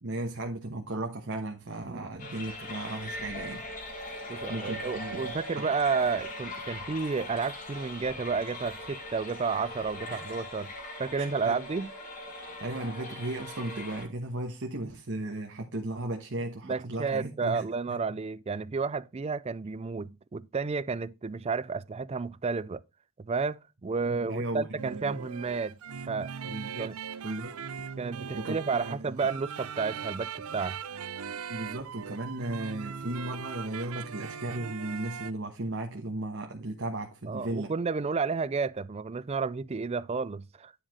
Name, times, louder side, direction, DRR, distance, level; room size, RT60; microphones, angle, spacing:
voice 1, 0.0-3.6 4.5-5.7 10.1-10.4 11.2-11.5 12.6-18.0 24.1-25.2 26.4-26.9 27.2-27.6 28.3-29.2 31.5-37.7, right 2 dB, 55° right, 1.2 m, -36 dB
sound 1, 2.2-14.0, left 1 dB, 40° left, 2.3 m, -40 dB
voice 2, 4.3-10.7 11.0-11.9 16.6-22.8 23.2-25.8 26.1-26.3 26.8-26.9 28.0-30.8 37.3-40.7, right 4 dB, 30° right, 0.4 m, -31 dB
sound 2, 24.8-35.3, right 7 dB, 75° right, 0.5 m, -40 dB
9.9 x 4.8 x 4.3 m
head